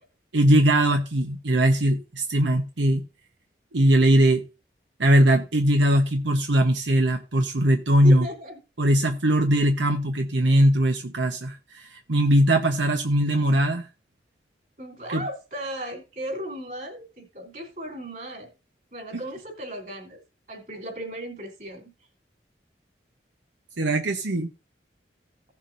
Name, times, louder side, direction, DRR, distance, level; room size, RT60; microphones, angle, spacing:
voice 1, 0.3-3.0 3.7-4.4 5.0-8.3 8.8-13.9 15.1-15.2 23.8-24.5, right 1 dB, 85° right, 1.0 m, -20 dB
voice 2, 8.0-8.6 14.8-18.5 18.9-20.2 20.5-21.9 24.3-24.5, right 1 dB, 45° right, 3.3 m, -36 dB
16.5 x 7.3 x 2.7 m
head